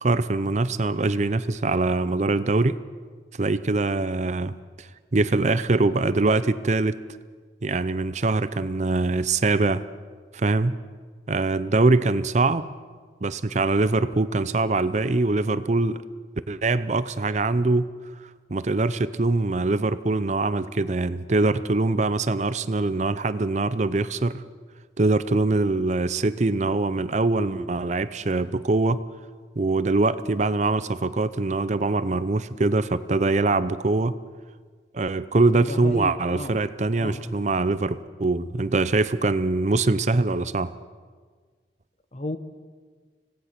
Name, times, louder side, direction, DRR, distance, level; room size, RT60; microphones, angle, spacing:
voice 1, 0.0-2.8 3.4-7.0 7.6-9.8 10.3-10.8 11.3-12.7 13.2-16.0 16.5-17.9 18.5-24.4 25.0-29.0 29.6-34.2 34.9-40.7, right 3 dB, 40° right, 14 dB, 0.6 m, -23 dB
voice 2, 35.4-36.6 36.9-37.4 42.1-42.4, left 1 dB, 40° left, 9 dB, 1.2 m, -33 dB
26.0 x 18.0 x 5.9 m, 1.5 s
head